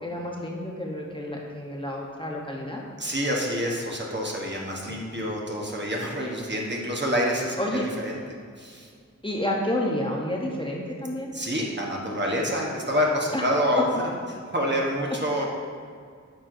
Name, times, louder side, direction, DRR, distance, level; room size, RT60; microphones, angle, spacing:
voice 1, 0.0-2.8 4.9-5.0 7.6-7.9 9.2-11.3 13.3-13.4 15.0-15.4, left 1 dB, 15° left, -2 dB, 0.8 m, -30 dB
voice 2, 3.0-8.2 8.6-8.9 11.3-14.1 14.5-15.4, equal, 35° right, -2 dB, 1.1 m, -27 dB
8.9 x 4.4 x 2.6 m, 2.1 s
wide cardioid pair, 50°, 31 cm